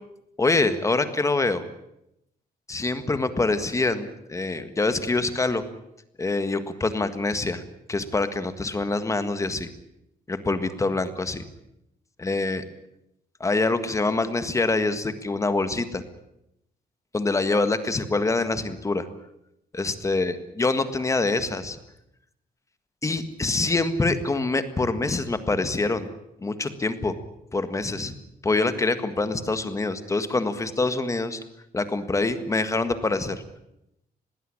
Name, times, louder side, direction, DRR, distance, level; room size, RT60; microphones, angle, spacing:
voice 1, 0.4-1.6 2.7-5.7 6.2-7.6 7.9-9.7 10.3-11.4 12.2-12.6 13.4-16.0 17.1-19.1 19.7-21.8 23.0-26.1 26.4-27.2 27.5-28.1 28.4-31.4 31.7-33.4, left 3 dB, 20° left, 11 dB, 1.6 m, -25 dB
20.5 x 16.5 x 9.9 m, 0.83 s
cardioid pair, 150°, 16 cm